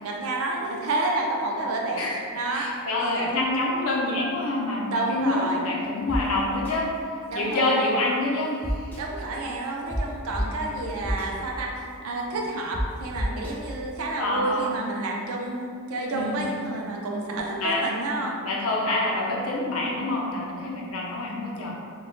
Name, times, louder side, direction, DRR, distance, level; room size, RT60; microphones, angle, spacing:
voice 1, 0.0-2.0 2.3-2.7 3.0-3.3 4.9-5.7 7.3-7.8 9.0-18.4, right 2 dB, 70° right, 0 dB, 0.4 m, -29 dB
voice 2, 2.5-6.9 7.3-8.9 14.2-14.7 16.1-16.5 17.6-17.8 18.4-21.7, left 2 dB, 70° left, -3 dB, 0.5 m, -26 dB
sound 1, 6.1-6.2 6.6-6.7 8.6-9.0 9.9-10.0 10.3-10.4 11.0-11.3 12.7-12.8 13.2-13.5, equal, 10° left, 0.4 m, -27 dB
2.2 x 2.1 x 3.7 m, 2.3 s
head